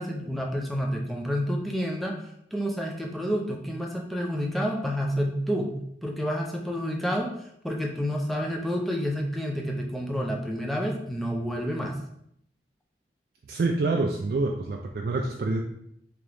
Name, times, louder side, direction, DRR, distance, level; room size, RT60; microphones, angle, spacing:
voice 1, 0.0-2.2 2.5-12.0, equal, ahead, -1 dB, 0.5 m, -29 dB
voice 2, 13.5-15.6, right 3 dB, 60° right, 1 dB, 0.3 m, -27 dB
3.6 x 2.9 x 3.3 m, 0.72 s
head